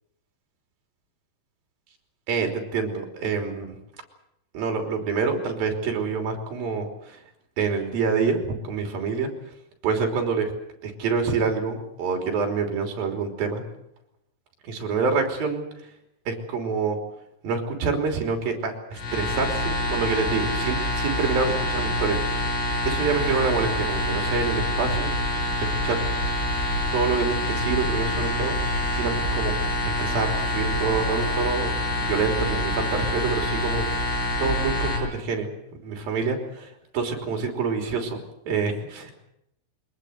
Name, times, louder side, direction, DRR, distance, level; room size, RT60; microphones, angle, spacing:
voice 1, 2.3-3.8 4.5-7.2 7.6-9.3 9.8-10.5 10.8-13.6 14.7-15.9 16.3-17.0 17.4-22.5 22.8-26.0 26.9-29.5 30.0-33.9 34.4-35.5 35.8-38.2 38.5-39.1, right 5 dB, 55° right, 4 dB, 4.8 m, -27 dB
sound 1, 18.9-35.0, left 1 dB, 55° left, 8.5 m, -26 dB
23.5 x 20.0 x 8.1 m, 0.81 s
omnidirectional pair, 5.4 m